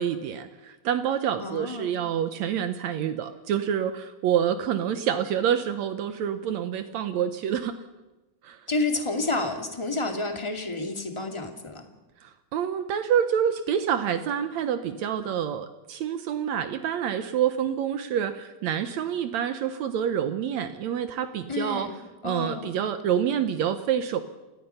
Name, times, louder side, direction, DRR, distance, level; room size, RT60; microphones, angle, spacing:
voice 1, 0.0-7.8 8.4-8.6 12.2-21.9 22.2-24.2, right 9 dB, 70° right, 10 dB, 2.1 m, -27 dB
voice 2, 1.4-1.9 8.7-11.8 21.5-21.9 22.2-22.7, left 2 dB, 10° left, 4 dB, 1.8 m, -29 dB
29.5 x 17.5 x 5.7 m, 1.1 s
omnidirectional pair, 3.4 m